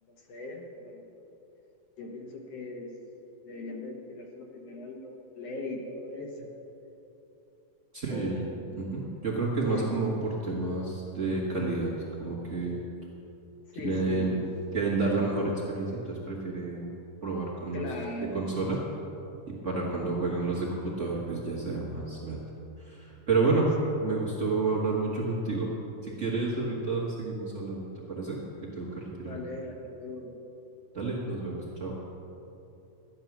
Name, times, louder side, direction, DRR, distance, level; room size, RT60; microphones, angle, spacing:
voice 1, 0.2-1.3 2.0-2.9 3.4-6.5 8.1-8.8 9.7-9.9 13.8-14.5 17.7-18.5 23.5-23.9 29.2-30.3, left 2 dB, 60° left, 0 dB, 2.0 m, -39 dB
voice 2, 7.9-8.4 8.7-11.9 12.2-12.8 13.8-14.4 14.7-16.9 17.2-17.9 18.3-18.8 19.6-22.4 22.8-23.7 24.0-25.7 26.0-28.4 28.8-29.3 30.9-31.9, right 3 dB, 85° right, -5 dB, 0.6 m, -30 dB
12.5 x 9.6 x 6.0 m, 2.9 s
omnidirectional pair, 3.6 m